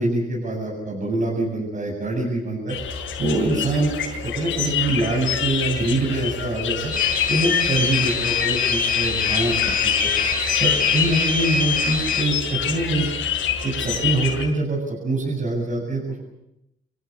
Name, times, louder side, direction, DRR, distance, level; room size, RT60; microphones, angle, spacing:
voice 1, 0.0-2.7 3.2-3.9 4.2-6.9 7.3-9.6 10.0-10.1 10.6-13.1 13.6-16.2, right 2 dB, 40° right, -2 dB, 8.0 m, -24 dB
sound 1, 2.7-14.5, left 8 dB, 75° left, 6.7 m, -26 dB
sound 2, 6.9-12.2, left 5 dB, 45° left, 4.7 m, -24 dB
28.0 x 16.0 x 8.2 m, 0.86 s
cardioid pair, 90°, 20 cm